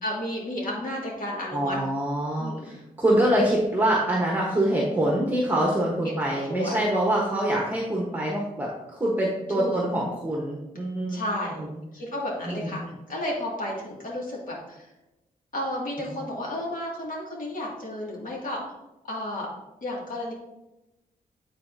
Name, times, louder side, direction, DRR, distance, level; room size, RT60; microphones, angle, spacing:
voice 1, 0.0-1.8 2.4-2.7 6.0-6.8 9.6-9.9 11.1-11.7 11.9-12.8 13.1-14.9 15.5-18.6 19.0-19.5 19.8-20.3, left 1 dB, 65° left, -3 dB, 2.1 m, -32 dB
voice 2, 1.5-11.2 11.6-11.7 12.5-12.9, right 1 dB, 10° right, -2 dB, 1.1 m, -25 dB
9.3 x 4.1 x 2.7 m, 0.98 s
cardioid pair, 85°, 15 cm